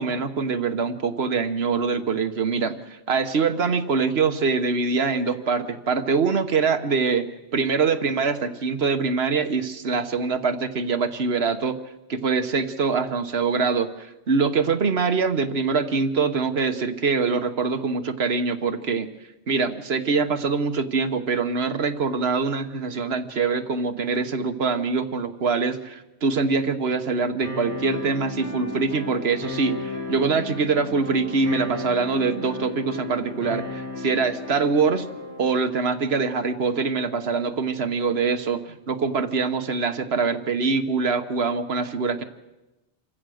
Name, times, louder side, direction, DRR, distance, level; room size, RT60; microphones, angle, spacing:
voice 1, 0.0-7.2 7.5-11.8 12.1-19.1 19.5-35.1 35.4-42.2, right 4 dB, 65° right, 10 dB, 1.3 m, -24 dB
sound 1, 27.4-35.4, left 3 dB, 40° left, 5.2 m, -34 dB
27.0 x 15.5 x 6.4 m, 1.0 s
omnidirectional pair, 1.1 m